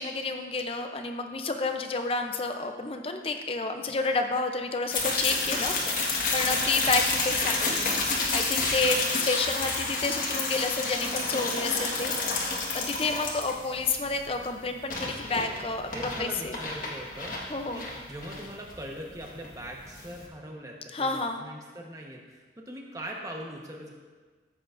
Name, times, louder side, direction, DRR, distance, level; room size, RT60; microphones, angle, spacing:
voice 1, 0.0-15.9 16.2-16.6 17.5-17.9 20.9-21.4, left 3 dB, 30° left, 5 dB, 0.6 m, -30 dB
sound 1, 4.9-20.3, left 3 dB, 50° left, 1.6 m, -30 dB
voice 2, 8.9-9.4 15.9-17.4 17.7-17.8 18.1-23.9, right 1 dB, 20° right, 0 dB, 1.2 m, -41 dB
15.0 x 8.0 x 2.6 m, 1.4 s
head